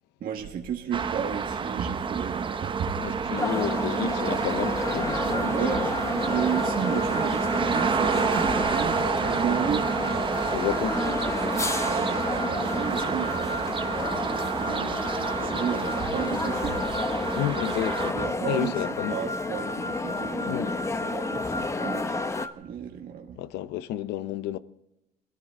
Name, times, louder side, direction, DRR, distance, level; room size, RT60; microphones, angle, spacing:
voice 1, 0.2-2.9 5.5-5.9 6.3-9.9 11.5-15.0 15.4-16.8 18.1-18.7 19.1-20.7 21.0-23.4, right 8 dB, 60° right, 1.7 m, -33 dB
sound 1, 0.9-18.1, right 6 dB, 30° right, 0.8 m, -29 dB
voice 2, 3.0-5.9 6.9-7.0 10.5-11.2 17.3-18.2 18.5-19.2 20.4-20.8 23.4-24.6, left 12 dB, 85° left, 0.7 m, -31 dB
sound 2, 3.4-22.5, left 3 dB, 15° left, 0.7 m, -31 dB
sound 3, 4.8-22.5, left 1 dB, 60° left, 2.8 m, -38 dB
20.0 x 13.5 x 3.7 m
cardioid pair, 110°, 17 cm